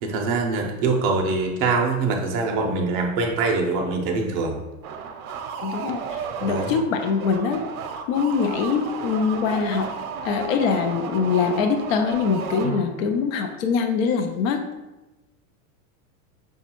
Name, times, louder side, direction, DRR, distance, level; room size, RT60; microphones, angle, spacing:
voice 1, 0.0-4.6 6.4-6.7, right 3 dB, 30° right, 1 dB, 0.5 m, -24 dB
sound 1, 4.8-13.1, right 6 dB, 80° right, 0.6 m, -33 dB
voice 2, 5.6-7.6 8.1-9.9 10.2-14.6, left 6 dB, 70° left, 5 dB, 0.6 m, -23 dB
5.2 x 2.3 x 2.9 m, 1.0 s
supercardioid pair, 155°, 42 cm